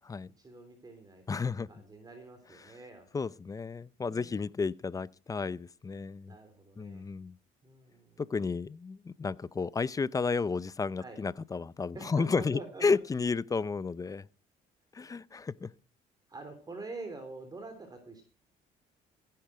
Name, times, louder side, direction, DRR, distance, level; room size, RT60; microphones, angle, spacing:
voice 1, 0.4-3.3 4.0-4.5 6.3-7.0 7.6-8.3 11.0-11.2 11.9-12.8 16.3-18.2, right 3 dB, 25° right, 3.3 m, -46 dB
voice 2, 1.3-1.7 2.6-2.7 3.1-6.4 6.8-7.4 8.2-14.3 14.9-15.7, left 4 dB, 20° left, 0.5 m, -32 dB
15.5 x 10.5 x 4.9 m
cardioid pair, 110°, 17 cm